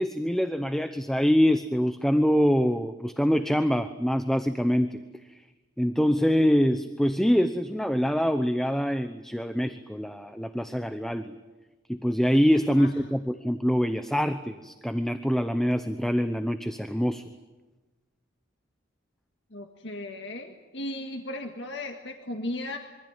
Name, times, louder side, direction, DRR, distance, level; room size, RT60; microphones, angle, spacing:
voice 1, 0.0-5.0 5.8-11.4 11.9-17.3, equal, ahead, 9 dB, 0.8 m, -25 dB
voice 2, 19.5-22.8, left 1 dB, 60° left, 4 dB, 2.0 m, -36 dB
26.0 x 24.0 x 9.0 m, 1.2 s
head